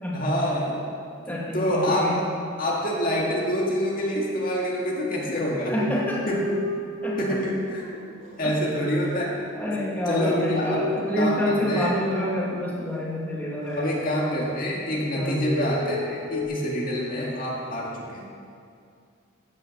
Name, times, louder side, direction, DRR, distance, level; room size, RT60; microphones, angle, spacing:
voice 1, 0.1-0.8 1.3-2.2 2.6-5.7 6.3-6.5 7.2-7.8 8.4-9.3 10.1-11.9 13.8-18.2, equal, 45° left, -3 dB, 2.0 m, -26 dB
voice 2, 1.3-2.2 5.7-6.3 7.0-7.4 8.4-8.6 9.5-14.0 15.1-15.5, left 1 dB, 10° left, -5 dB, 2.3 m, -28 dB
sound 1, 5.5-8.4 8.9-13.2 13.6-14.6 14.9-16.4, equal, 75° right, 2.7 m, -33 dB
15.5 x 9.5 x 6.5 m, 2.4 s
head